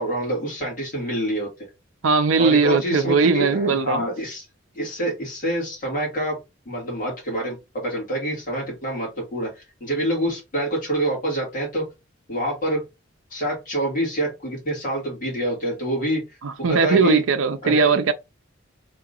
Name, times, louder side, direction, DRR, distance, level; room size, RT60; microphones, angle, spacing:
voice 1, 0.0-1.5 2.4-4.4 4.7-6.4 6.7-11.8 12.3-12.8 13.3-16.2 16.7-17.2 17.6-17.9, right 1 dB, 40° left, 2.3 m, -26 dB
voice 2, 2.0-4.0 16.4-18.1, right 4 dB, 80° right, 0.5 m, -19 dB
3.7 x 2.9 x 3.8 m
head